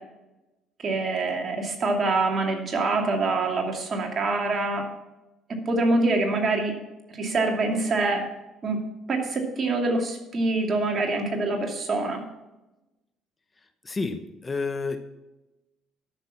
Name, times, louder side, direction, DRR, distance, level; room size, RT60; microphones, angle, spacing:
voice 1, 0.8-4.9 5.5-6.7 7.1-8.2 8.6-8.8 9.1-12.2, right 2 dB, 45° right, 2 dB, 2.6 m, -25 dB
voice 2, 13.8-15.0, left 4 dB, 25° left, 8 dB, 1.0 m, -30 dB
12.5 x 6.5 x 5.9 m, 1.0 s
supercardioid pair, 75°, 0 cm